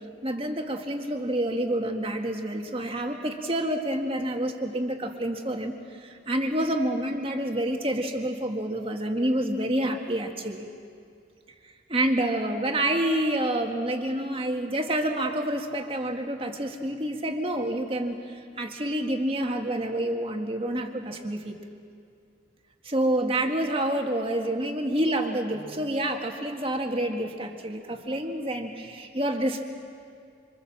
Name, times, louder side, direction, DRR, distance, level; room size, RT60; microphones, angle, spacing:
voice 1, 0.2-5.8 6.0-10.7 11.9-21.6 22.8-29.6, right 1 dB, 30° right, 3 dB, 1.9 m, -28 dB
26.5 x 26.0 x 7.4 m, 2.4 s
head